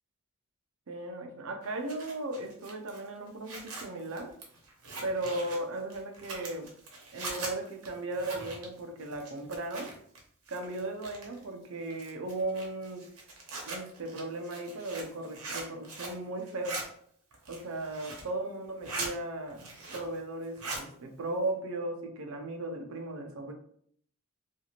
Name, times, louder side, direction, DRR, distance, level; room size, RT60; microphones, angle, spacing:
voice 1, 0.9-4.3 5.0-6.7 7.1-9.9 10.5-13.1 13.7-16.8 17.5-19.7 19.9-23.5, right 2 dB, 65° right, 4 dB, 0.5 m, -36 dB
Zipper (clothing), 1.6-10.2 10.5-11.4 11.9-16.2 16.5-16.8 17.3-18.3 18.6-19.1 19.5-20.2 20.4-20.9, right 3 dB, 85° right, 0.8 m, -41 dB
2.6 x 2.4 x 2.9 m, 0.63 s
head